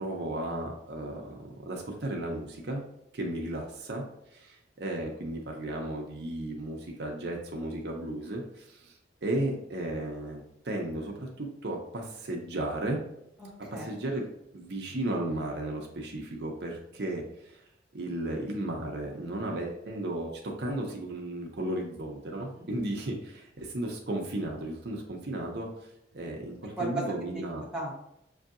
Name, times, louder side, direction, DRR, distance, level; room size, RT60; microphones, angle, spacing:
voice 1, 0.0-2.8 3.1-4.0 4.3-13.0 13.7-14.3 14.5-17.6 17.9-25.7 26.1-27.6, right 1 dB, 60° right, 0 dB, 0.7 m, -34 dB
voice 2, 13.4-14.2 22.5-22.7 26.8-27.0 27.3-28.1, right 2 dB, 5° right, -5 dB, 1.0 m, -37 dB
6.3 x 2.7 x 2.5 m, 0.80 s
head